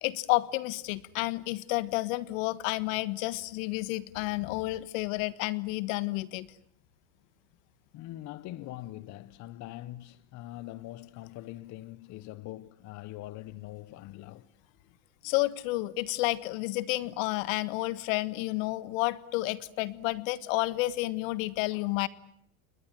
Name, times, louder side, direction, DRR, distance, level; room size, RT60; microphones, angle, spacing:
voice 1, 0.0-6.5 15.2-22.1, left 19 dB, 65° left, 1.6 m, -30 dB
voice 2, 7.9-14.5, left 15 dB, 40° left, 1.1 m, -43 dB
28.5 x 21.0 x 9.1 m
supercardioid pair, 135°, 44 cm